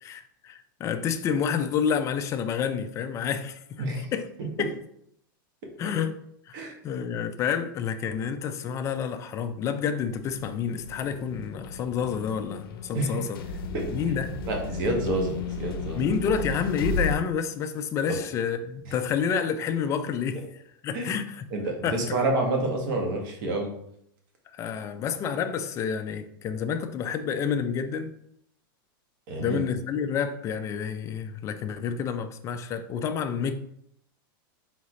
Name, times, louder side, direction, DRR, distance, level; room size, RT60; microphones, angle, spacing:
voice 1, 0.0-4.2 4.6-4.7 5.8-6.2 6.5-6.6 6.8-13.4 13.9-14.4 15.9-20.4 20.8-21.4 21.8-22.2 24.5-28.2 29.4-33.5, left 7 dB, 25° left, 0.4 m, -29 dB
voice 2, 3.8-4.1 6.5-6.7 12.9-13.2 13.7-13.9 14.5-16.1 18.1-18.2 18.9-19.0 20.9-21.1 21.5-23.7 29.3-29.6, right 2 dB, 55° right, 1.4 m, -28 dB
sound 1, 10.1-17.2, left 3 dB, 85° left, 0.6 m, -34 dB
4.0 x 3.8 x 3.1 m
supercardioid pair, 145°, 12 cm